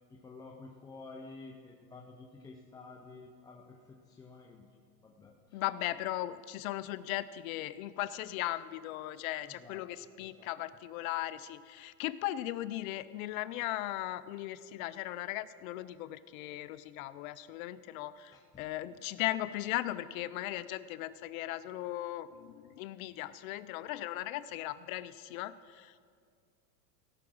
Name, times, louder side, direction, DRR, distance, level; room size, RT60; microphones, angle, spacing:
voice 1, 0.1-4.7 5.0-5.6 9.5-9.8 10.2-10.5 18.3-18.6, left 3 dB, 10° left, 1 dB, 0.4 m, -51 dB
voice 2, 5.5-26.0, left 15 dB, 60° left, 15 dB, 0.6 m, -38 dB
17.5 x 5.9 x 6.2 m, 2.1 s
supercardioid pair, 125°, 47 cm